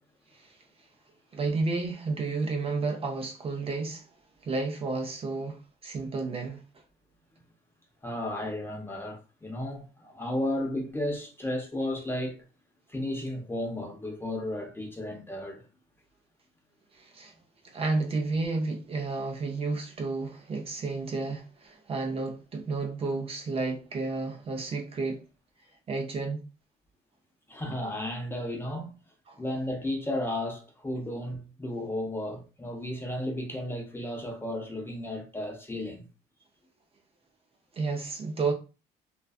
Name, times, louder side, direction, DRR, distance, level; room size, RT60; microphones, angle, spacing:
voice 1, 1.3-4.0 4.4-6.6 17.0-17.3 17.6-25.2 25.9-26.5 29.3-29.4 37.7-38.5, right 3 dB, 35° right, 0.5 m, -31 dB
voice 2, 8.0-12.4 12.9-15.6 27.5-28.9 29.4-36.1, left 1 dB, 15° left, 0.6 m, -33 dB
2.4 x 2.3 x 2.3 m
cardioid pair, 110°, 17 cm